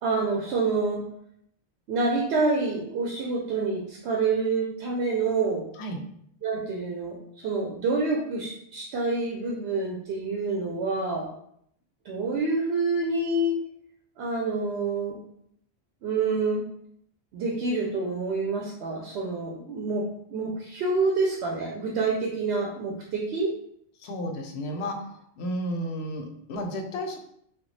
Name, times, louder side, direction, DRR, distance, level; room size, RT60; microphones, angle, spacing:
voice 1, 0.0-1.0 1.9-5.7 6.4-7.2 7.4-11.3 12.0-13.6 14.2-15.2 16.0-16.6 17.3-20.0 20.3-23.5, right 3 dB, 80° right, -1 dB, 0.8 m, -27 dB
voice 2, 24.0-25.1 25.4-27.2, equal, 85° left, 3 dB, 0.9 m, -32 dB
3.2 x 2.2 x 3.1 m, 0.70 s
omnidirectional pair, 1.1 m